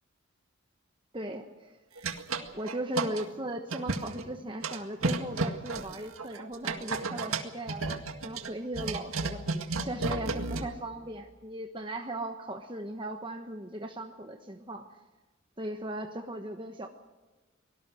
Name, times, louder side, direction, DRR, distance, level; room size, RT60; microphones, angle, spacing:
voice 1, 1.1-1.8 2.5-7.9 8.2-9.4 9.8-14.8 15.6-16.9, right 1 dB, 25° right, 5 dB, 1.2 m, -38 dB
sound 1, 2.0-3.2 3.7-4.2 4.6-10.7, right 3 dB, 80° right, 1.9 m, -33 dB
24.5 x 19.0 x 6.3 m, 1.2 s
head